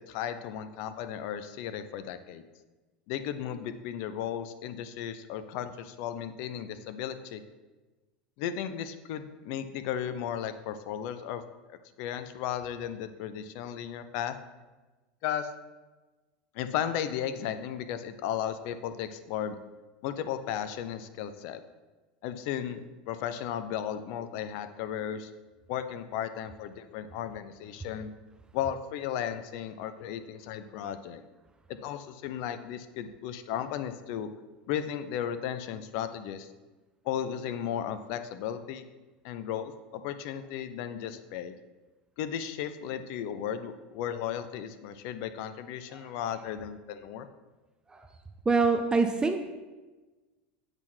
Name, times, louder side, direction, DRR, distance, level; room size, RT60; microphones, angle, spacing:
voice 1, 0.0-2.4 3.1-7.4 8.4-11.4 11.7-14.3 15.2-15.5 16.5-19.6 20.0-21.6 22.2-25.3 25.7-28.1 28.5-31.2 31.8-34.3 34.7-36.5 37.0-38.9 39.2-41.6 42.2-47.3, left 9 dB, 60° left, 10 dB, 0.5 m, -35 dB
voice 2, 48.5-49.4, right 4 dB, 15° right, 6 dB, 0.5 m, -25 dB
7.9 x 3.8 x 4.4 m, 1.2 s
hypercardioid pair, 100°, 5 cm